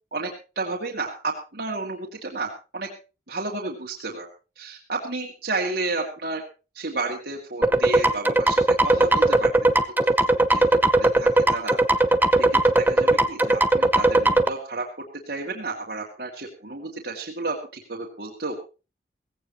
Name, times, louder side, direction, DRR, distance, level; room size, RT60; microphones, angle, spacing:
voice 1, 0.6-2.9 3.3-4.3 4.6-6.4 6.7-9.5 10.0-10.6 11.0-11.8 12.4-14.8 15.2-18.6, right 3 dB, 60° right, -1 dB, 2.3 m, -32 dB
sound 1, 7.6-14.5, right 2 dB, 10° right, 0.8 m, -18 dB
17.5 x 16.0 x 3.0 m, 0.32 s
head